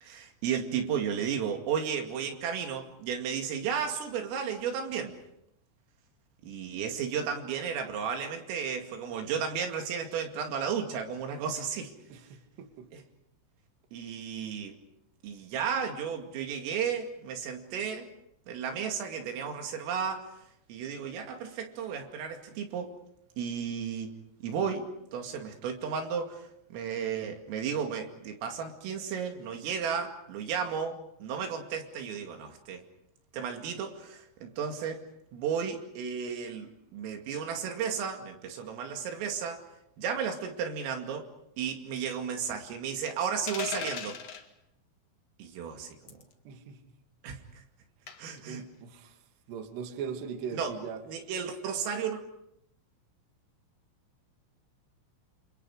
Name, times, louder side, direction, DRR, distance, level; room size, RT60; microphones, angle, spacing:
voice 1, 0.0-5.2 6.4-11.9 12.9-13.0 13.9-14.8 15.2-18.1 18.5-20.3 20.7-22.9 23.4-24.1 24.4-32.8 33.3-35.0 35.3-39.6 40.0-41.3 41.6-44.2 45.4-46.2 47.2-47.4 48.2-48.6 50.5-50.8 51.1-52.2, right 7 dB, 80° right, 4 dB, 4.9 m, -34 dB
voice 2, 12.1-12.9 46.5-46.8 48.3-49.2 49.5-51.0, right 7 dB, 60° right, 5 dB, 4.0 m, -40 dB
sound 1, 43.5-44.4 46.1-46.3 48.1-48.4, left 8 dB, 60° left, 1.7 m, -37 dB
29.5 x 28.0 x 5.0 m, 0.78 s
omnidirectional pair, 5.9 m